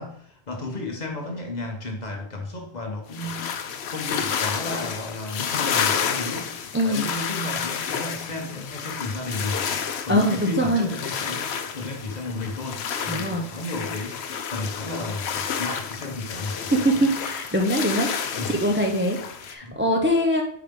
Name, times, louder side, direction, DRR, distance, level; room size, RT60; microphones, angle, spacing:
voice 1, 0.0-6.5 6.8-17.0 18.4-18.5 19.6-19.7, left 2 dB, 40° left, 2 dB, 1.2 m, -33 dB
sound 1, 3.1-19.5, left 7 dB, 75° left, 0.9 m, -30 dB
voice 2, 6.7-7.1 10.1-10.9 13.1-13.5 16.7-20.4, equal, 10° right, 2 dB, 0.6 m, -23 dB
5.1 x 4.7 x 5.3 m, 0.64 s
omnidirectional pair, 1.1 m